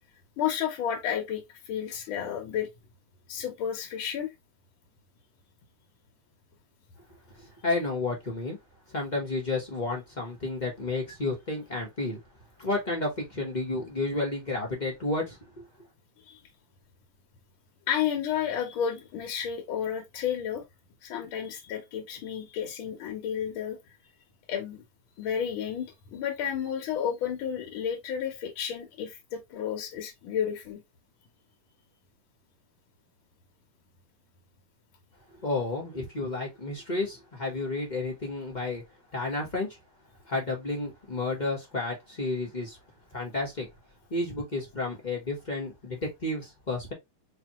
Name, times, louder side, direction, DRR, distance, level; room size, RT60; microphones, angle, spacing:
voice 1, 0.4-2.7 3.3-4.3 16.2-16.4 17.9-20.6 21.0-23.8 24.5-24.8 25.2-30.8, left 9 dB, 70° left, 1.6 m, -31 dB
voice 2, 7.3-8.6 8.9-12.2 12.6-15.7 35.4-38.8 39.1-39.8 40.3-42.8 43.1-43.7 44.1-46.9, left 2 dB, 30° left, 0.9 m, -31 dB
4.9 x 2.7 x 2.9 m
omnidirectional pair, 2.4 m